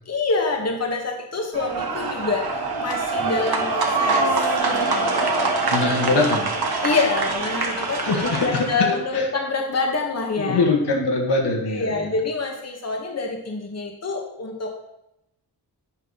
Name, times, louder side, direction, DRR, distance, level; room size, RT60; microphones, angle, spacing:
voice 1, 0.1-5.5 6.8-10.6 11.7-14.7, left 3 dB, 40° left, 1 dB, 1.2 m, -26 dB
sound 1, 1.5-8.9, right 3 dB, 65° right, 1.3 m, -24 dB
voice 2, 5.7-6.5 8.0-8.9 9.1-9.3 10.4-12.1, left 3 dB, 80° left, 0 dB, 1.7 m, -22 dB
9.1 x 3.1 x 5.6 m, 0.85 s
cardioid pair, 75°, 40 cm